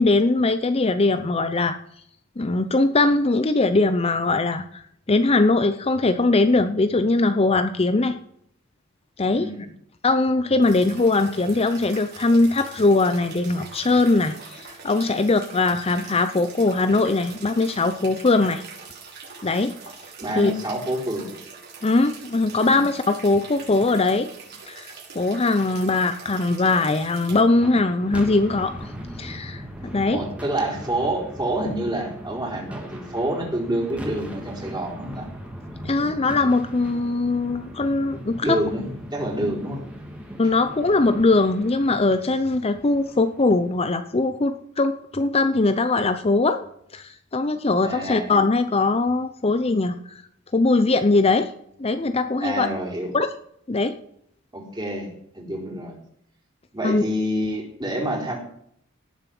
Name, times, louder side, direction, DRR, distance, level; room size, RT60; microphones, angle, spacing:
voice 1, 0.0-1.8 2.4-4.8 5.1-8.2 9.2-9.5 10.0-18.6 19.4-19.7 20.4-20.5 21.8-24.3 24.7-28.9 29.2-30.2 35.8-38.6 40.4-46.7 46.9-50.2 50.5-51.5 51.8-52.7 53.1-53.3 53.7-53.9 56.8-57.0, left 3 dB, 30° left, 9 dB, 0.7 m, -21 dB
voice 2, 9.3-9.6 20.2-21.3 22.6-22.8 30.1-35.3 38.4-39.8 47.8-48.3 52.4-53.1 54.5-55.1 55.3-56.0 56.7-58.4, right 1 dB, 20° right, -1 dB, 4.3 m, -27 dB
sound 1, 10.6-27.4, right 5 dB, 55° right, 5.7 m, -43 dB
sound 2, 27.6-43.9, equal, 5° right, 2.3 m, -39 dB
18.0 x 7.4 x 6.0 m, 0.70 s
head